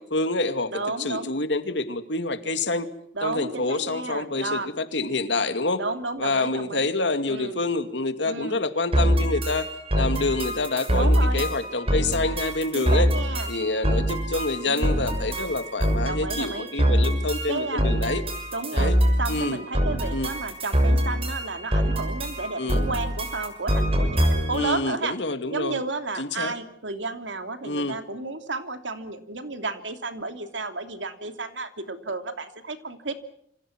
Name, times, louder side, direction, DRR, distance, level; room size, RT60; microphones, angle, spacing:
voice 1, 0.0-2.9 3.2-5.8 6.2-13.1 13.5-18.2 18.7-18.9 19.3-19.6 20.1-20.3 22.6-22.8 24.5-25.8 26.2-26.5 27.6-28.0, left 2 dB, 75° left, 9 dB, 2.4 m, -27 dB
voice 2, 0.7-1.3 3.1-4.7 5.8-6.9 7.3-7.6 8.2-8.6 10.9-11.4 12.7-13.5 14.6-15.0 16.1-16.7 17.5-18.0 18.5-18.9 19.2-25.1 25.5-33.1, right 3 dB, 90° right, 8 dB, 2.9 m, -32 dB
sound 1, 8.9-24.7, equal, 35° right, 6.4 m, -24 dB
27.5 x 26.0 x 6.0 m, 0.71 s
head